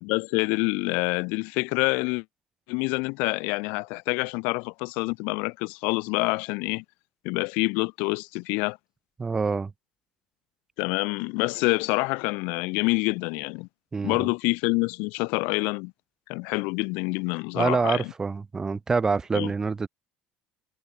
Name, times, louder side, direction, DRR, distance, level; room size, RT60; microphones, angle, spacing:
voice 1, 0.0-2.2 2.7-6.8 7.2-8.8 10.8-13.7 14.0-15.9 16.3-18.1 19.3-19.5, left 30 dB, 80° left, 1.1 m, -27 dB
voice 2, 9.2-9.7 13.9-14.3 17.6-19.9, right 4 dB, 20° right, 4.6 m, -26 dB
cardioid pair, 125°, 3 cm